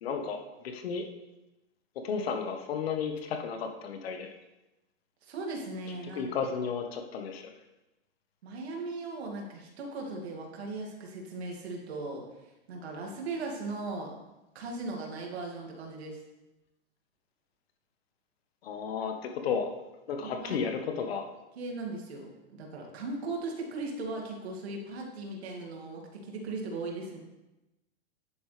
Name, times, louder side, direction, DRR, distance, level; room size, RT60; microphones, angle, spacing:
voice 1, 0.0-1.0 2.0-4.3 6.1-7.5 18.6-21.2, left 6 dB, 70° left, 5 dB, 1.4 m, -33 dB
voice 2, 5.2-6.5 8.4-12.2 12.7-14.1 14.5-16.2 20.2-20.6 21.0-21.1 21.6-27.2, right 3 dB, 80° right, 0 dB, 2.5 m, -38 dB
10.5 x 8.4 x 3.4 m, 0.99 s
supercardioid pair, 145°, 31 cm